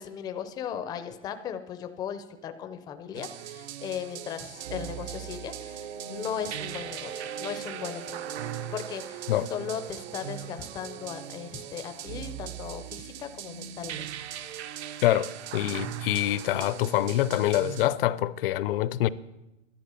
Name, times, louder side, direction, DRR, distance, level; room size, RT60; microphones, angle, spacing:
voice 1, 0.0-14.1, left 8 dB, 10° left, 0.5 m, -37 dB
sound 1, 3.1-17.9, right 10 dB, 70° right, 1.0 m, -39 dB
sound 2, 4.6-12.0 12.3-12.4 12.7-12.8, right 7 dB, 85° right, 2.0 m, -43 dB
voice 2, 15.0-19.1, left 14 dB, 55° left, 0.6 m, -25 dB
11.5 x 11.0 x 6.8 m
supercardioid pair, 160°, 35 cm